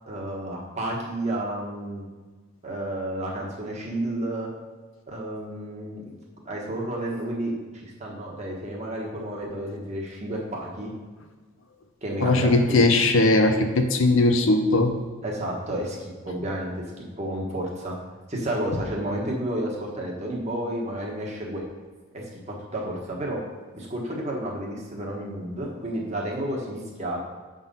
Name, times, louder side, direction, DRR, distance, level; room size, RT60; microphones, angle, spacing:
voice 1, 0.0-2.0 2.6-4.5 5.1-6.0 6.4-10.9 12.0-12.8 15.2-16.8 17.2-17.9 18.3-21.6 22.1-23.4 23.7-27.2, right 1 dB, 30° right, -2 dB, 1.3 m, -31 dB
voice 2, 12.2-15.0, left 2 dB, 60° left, 6 dB, 0.6 m, -19 dB
7.2 x 3.8 x 5.3 m, 1.4 s
head